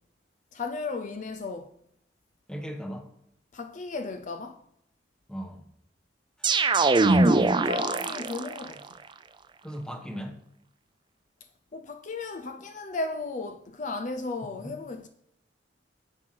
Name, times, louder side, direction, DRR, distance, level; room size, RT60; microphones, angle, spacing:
voice 1, 0.5-1.7 3.5-4.6 7.0-8.8 11.7-15.1, left 3 dB, 45° left, 0.6 m, -35 dB
voice 2, 2.5-3.1 5.3-5.6 9.6-10.4 14.4-14.7, equal, 5° left, 1.1 m, -37 dB
sound 1, 6.4-8.7, right 3 dB, 25° right, 0.5 m, -22 dB
9.8 x 6.3 x 4.6 m
head